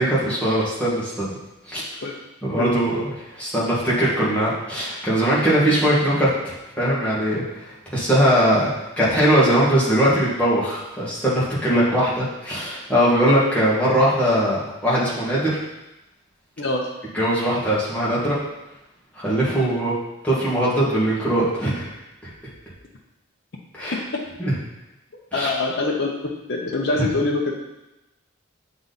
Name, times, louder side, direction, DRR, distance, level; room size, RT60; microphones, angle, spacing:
voice 1, 0.0-1.4 1.7-1.8 2.4-7.4 7.9-15.6 17.1-18.3 19.2-19.9 20.2-21.9 23.7-24.0 24.4-24.5 25.3-25.5, right 1 dB, 5° left, -9 dB, 1.7 m, -20 dB
voice 2, 16.6-16.9 19.5-19.7 23.9-24.2 25.3-26.1 26.5-27.6, left 2 dB, 50° left, -2 dB, 0.7 m, -24 dB
7.6 x 4.0 x 4.0 m, 0.95 s
head